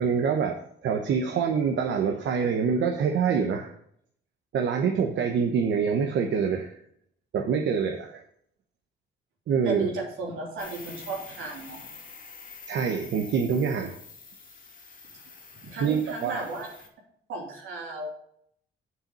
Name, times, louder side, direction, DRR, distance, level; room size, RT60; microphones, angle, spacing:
voice 1, 0.0-3.7 4.5-6.7 7.3-8.2 9.5-9.9 12.7-13.9 15.8-16.5, right 6 dB, 70° right, 3 dB, 1.0 m, -25 dB
voice 2, 9.6-11.8 15.6-16.9 17.3-18.1, right 3 dB, 85° right, -2 dB, 3.3 m, -35 dB
sound 1, 10.6-16.9, left 4 dB, 45° left, 2.1 m, -46 dB
7.8 x 6.2 x 5.5 m, 0.68 s
cardioid pair, 90°, 20 cm